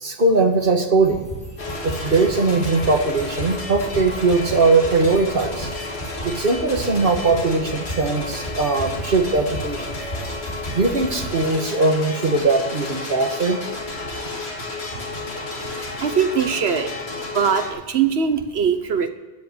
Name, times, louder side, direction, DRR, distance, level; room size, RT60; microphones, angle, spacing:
voice 1, 0.0-1.3 1.8-5.7 6.2-10.0 10.7-13.6, right 3 dB, 55° right, 5 dB, 1.7 m, -20 dB
sound 1, 1.0-11.5, right 1 dB, 55° left, 3.9 m, -35 dB
sound 2, 1.6-17.7, left 2 dB, 85° left, 2.5 m, -32 dB
voice 2, 15.6-17.0 17.3-19.1, right 7 dB, 85° right, 9 dB, 1.3 m, -22 dB
13.5 x 7.9 x 8.2 m, 1.3 s
omnidirectional pair, 1.1 m